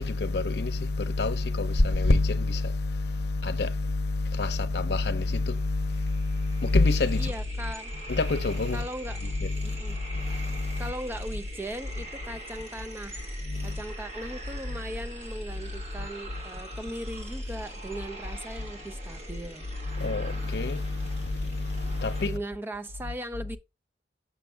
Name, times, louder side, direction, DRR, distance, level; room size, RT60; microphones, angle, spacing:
voice 1, 0.0-7.3 8.1-8.8 9.2-10.9 13.4-13.8 19.8-22.4, left 3 dB, 70° left, 0.7 m, -27 dB
sound 1, 5.3-5.4 5.6-22.3, equal, 35° right, 1.8 m, -40 dB
voice 2, 7.2-7.9 8.7-9.2 9.6-10.0 10.8-13.2 13.6-19.7 22.3-23.6, right 1 dB, 10° right, 0.4 m, -38 dB
7.0 x 6.0 x 3.4 m
head